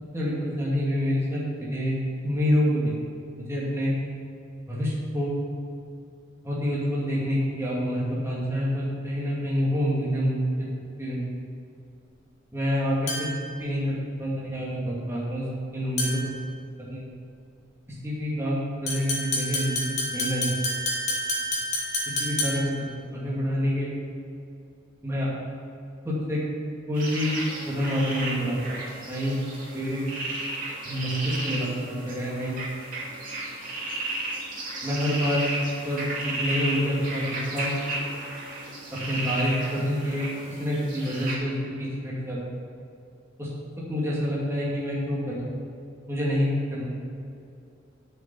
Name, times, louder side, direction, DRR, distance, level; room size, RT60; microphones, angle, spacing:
voice 1, 0.1-2.0 2.2-2.9 3.5-3.9 4.7-5.3 6.4-10.7 11.0-11.2 12.5-13.3 13.6-15.4 15.7-16.3 16.9-17.0 18.0-20.6 22.2-22.7 23.1-23.9 25.0-25.3 26.0-26.4 26.9-27.3 27.7-28.8 29.1-29.4 29.7-30.0 30.8-32.6 34.8-35.4 35.8-37.7 39.1-42.4 43.4-43.5 43.9-45.5 46.1-46.9, equal, 15° right, -7 dB, 2.2 m, -27 dB
sound 1, 13.1-13.5 16.0-16.4 18.9-22.8, left 1 dB, 35° left, 2.1 m, -29 dB
sound 2, 26.9-41.3, right 2 dB, 45° right, 2.6 m, -34 dB
7.2 x 7.1 x 8.3 m, 2.5 s
head